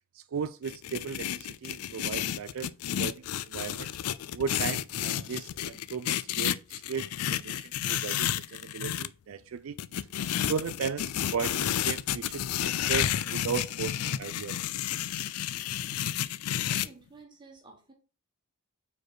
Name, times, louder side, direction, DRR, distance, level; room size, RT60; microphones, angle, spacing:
voice 1, 0.1-3.9 4.3-9.8 10.4-14.6, right 6 dB, 65° right, 0.4 m, -36 dB
sound 1, 0.6-9.1 9.8-16.9, left 11 dB, 90° left, 0.4 m, -31 dB
voice 2, 16.5-17.9, right 3 dB, 20° right, 1.6 m, -53 dB
4.8 x 4.7 x 4.5 m
head